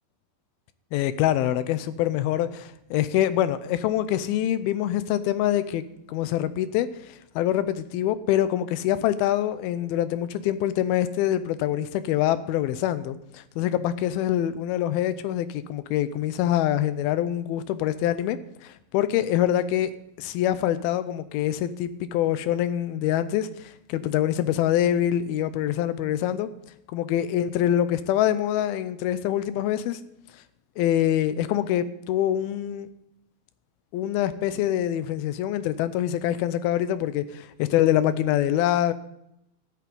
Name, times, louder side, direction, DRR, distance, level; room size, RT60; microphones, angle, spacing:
voice 1, 0.9-5.8 6.1-19.9 20.2-26.5 26.9-30.0 30.8-32.9 33.9-38.9, left 12 dB, 90° left, 13 dB, 2.5 m, -25 dB
13.0 x 5.9 x 9.3 m, 0.82 s
omnidirectional pair, 4.3 m